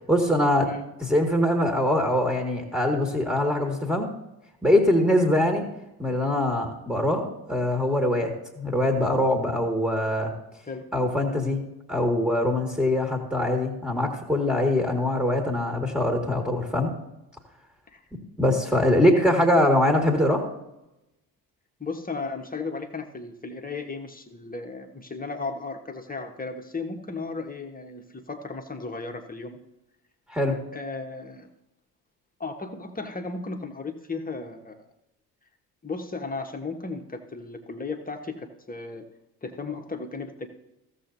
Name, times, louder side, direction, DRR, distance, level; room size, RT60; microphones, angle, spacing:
voice 1, 0.1-0.7 1.0-4.1 4.6-5.7 6.0-10.3 10.9-11.6 11.9-16.9 18.4-20.4 30.3-30.6, left 1 dB, 5° right, 2 dB, 2.0 m, -23 dB
voice 2, 21.8-29.6 30.7-31.5 32.4-34.9 35.8-39.0 39.4-40.5, left 3 dB, 15° left, 3 dB, 1.4 m, -35 dB
16.0 x 7.3 x 2.7 m, 0.92 s
figure-of-eight pair, 45°, 50 cm